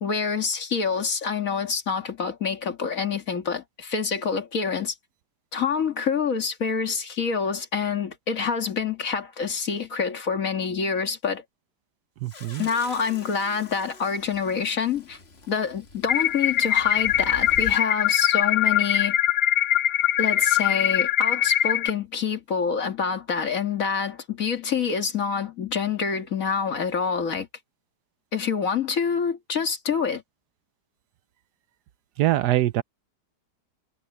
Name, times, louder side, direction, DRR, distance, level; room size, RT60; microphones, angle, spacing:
voice 1, 0.0-4.9 5.5-11.4 12.6-15.2 15.5-19.2 20.2-27.5 28.3-30.2, left 6 dB, 55° left, 2.1 m, -27 dB
voice 2, 12.2-12.7 32.2-32.8, right 14 dB, 75° right, 1.2 m, -23 dB
sound 1, 12.3-17.8, left 3 dB, 40° left, 2.0 m, -44 dB
sound 2, 16.1-21.9, left 11 dB, 75° left, 0.5 m, -22 dB
omnidirectional pair, 1.8 m